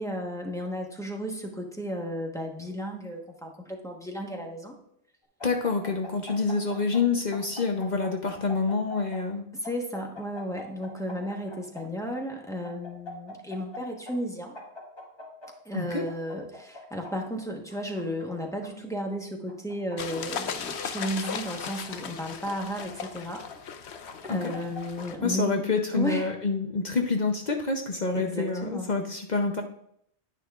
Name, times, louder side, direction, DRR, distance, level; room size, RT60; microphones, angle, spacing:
voice 1, 0.0-4.8 9.5-14.6 15.6-23.4 24.3-25.6 25.9-26.3 28.1-28.9, equal, 5° left, 0 dB, 1.1 m, -34 dB
voice 2, 5.4-9.4 15.7-16.0 24.2-24.5 25.2-29.6, left 4 dB, 45° left, 3 dB, 0.8 m, -27 dB
sound 1, 5.4-7.0 7.3-9.2 9.6-11.8 12.6-13.8 14.1-14.2 14.5-15.5 16.1-17.1 17.7-18.7 19.5-20.4 20.7-22.0 22.6-23.6 24.1-25.0, left 2 dB, 25° left, 1.4 m, -43 dB
sound 2, 20.0-25.1, left 6 dB, 80° left, 1.0 m, -37 dB
10.0 x 9.4 x 2.4 m, 0.72 s
omnidirectional pair, 1.1 m